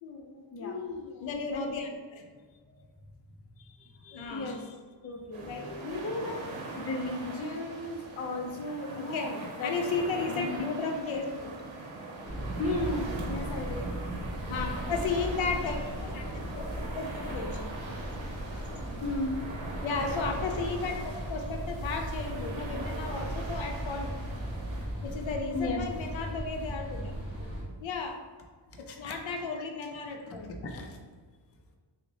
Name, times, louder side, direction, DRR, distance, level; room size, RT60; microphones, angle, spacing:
voice 1, 0.0-2.3 4.1-4.6 5.4-6.8 7.9-8.0 8.9-9.4 9.6-11.6 13.7-13.9 14.5-16.2 16.5-16.7 16.9-17.6 18.6-18.7 19.8-24.1 25.0-27.1 27.8-28.2 28.8-30.5, left 4 dB, 90° left, 3 dB, 0.6 m, -34 dB
voice 2, 3.8-4.8 5.0-5.5 5.8-6.4 6.7-9.7 10.3-10.6 12.6-13.9 19.0-19.4 25.5-25.8 28.9-29.1 30.3-30.9, left 2 dB, 35° left, 2 dB, 0.4 m, -35 dB
sound 1, 5.3-24.9, right 3 dB, 85° right, 0.8 m, -42 dB
sound 2, 12.2-27.6, equal, 30° right, 0.9 m, -37 dB
6.0 x 2.1 x 2.7 m, 1.5 s
wide cardioid pair, 175°, 45 cm